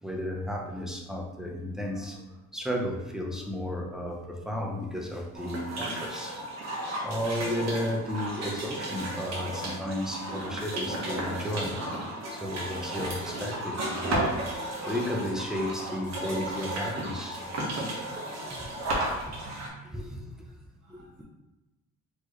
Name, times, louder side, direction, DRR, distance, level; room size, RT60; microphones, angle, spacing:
voice 1, 0.0-2.2 2.5-6.4 7.0-11.8 12.3-14.6 14.8-17.5 18.1-18.2 18.5-18.6 19.2-19.4 19.8-20.5 20.9-21.2, left 1 dB, ahead, 0 dB, 0.8 m, -33 dB
sound 1, 5.4-19.7, right 1 dB, 60° right, 1.4 m, -34 dB
voice 2, 19.4-20.2 20.8-21.2, right 5 dB, 90° right, -6 dB, 1.1 m, -51 dB
4.2 x 3.2 x 3.1 m, 1.0 s
cardioid pair, 90°, 30 cm